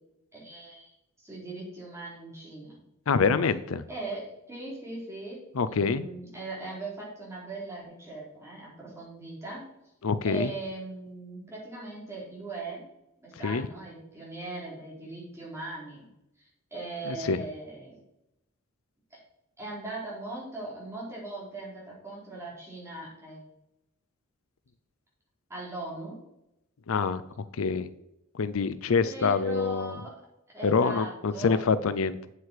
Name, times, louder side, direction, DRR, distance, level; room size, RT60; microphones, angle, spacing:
voice 1, 0.3-2.8 3.9-4.2 4.5-5.4 5.7-9.7 10.2-12.9 13.2-16.1 16.4-18.0 19.6-23.5 25.5-26.2 29.0-30.1 30.5-31.6, right 2 dB, 15° right, -6 dB, 4.3 m, -39 dB
voice 2, 3.1-3.8 5.6-6.0 10.0-10.5 13.4-13.7 17.1-17.4 26.9-27.2 27.6-27.9 28.3-30.0 30.6-32.2, left 5 dB, 75° left, 14 dB, 0.5 m, -26 dB
8.2 x 8.1 x 4.8 m, 0.85 s
head